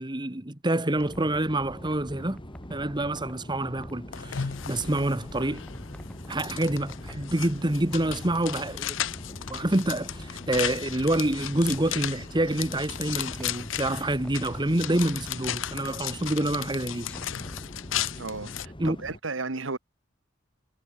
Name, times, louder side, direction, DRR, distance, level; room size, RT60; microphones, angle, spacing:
voice 1, 0.0-2.4 2.7-5.7 6.3-9.0 9.5-17.1 18.8-19.0, right 1 dB, 25° right, 1.6 m, -27 dB
sound 1, 0.8-3.9 4.4-7.6 7.9-9.7 10.0-11.9 12.2-13.7 14.1-15.1 17.0-18.1 18.4-18.5, equal, 5° left, 1.9 m, -48 dB
sound 2, 1.0-19.2, equal, 25° left, 5.5 m, -44 dB
sound 3, 4.1-18.7, left 10 dB, 70° left, 0.7 m, -35 dB
voice 2, 18.2-19.8, right 3 dB, 90° right, 1.6 m, -34 dB
head